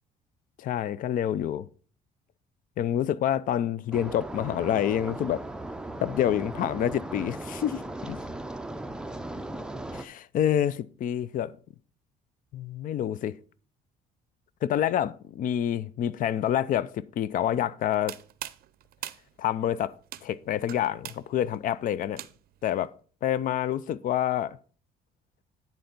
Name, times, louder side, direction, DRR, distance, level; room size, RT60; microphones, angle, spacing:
voice 1, 0.6-1.7 2.8-5.4 6.0-7.8 8.1-8.2 9.9-11.5 12.5-13.4 14.6-18.1 19.4-19.9 20.2-22.2 22.6-22.9 23.2-24.6, left 10 dB, 55° left, 0.5 m, -27 dB
sound 1, 3.9-10.1, right 1 dB, 5° right, 0.5 m, -37 dB
sound 2, 17.8-22.7, right 13 dB, 60° right, 0.5 m, -43 dB
10.5 x 4.5 x 5.2 m
cardioid pair, 110°, 17 cm